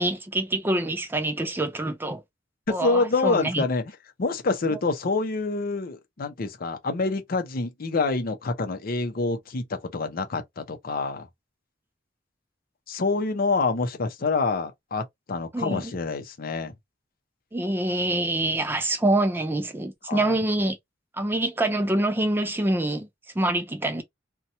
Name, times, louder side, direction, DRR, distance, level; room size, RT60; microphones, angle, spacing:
voice 1, 0.0-2.2 2.7-3.6 15.5-15.9 17.5-20.8 21.1-23.1 23.4-24.0, right 1 dB, 10° right, 0.4 m, -25 dB
voice 2, 2.7-3.8 4.2-11.3 12.9-16.7 20.1-20.4, left 3 dB, 50° left, 0.6 m, -27 dB
2.8 x 2.2 x 2.6 m
head